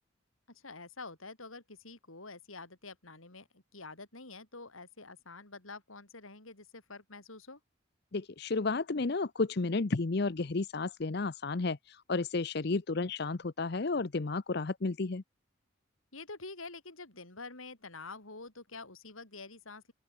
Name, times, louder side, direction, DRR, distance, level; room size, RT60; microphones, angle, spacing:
voice 1, 0.5-7.6 12.7-12.8 16.1-19.9, left 3 dB, 90° left, 5.3 m, -47 dB
voice 2, 8.1-15.2, left 3 dB, 55° left, 0.7 m, -32 dB
open air
head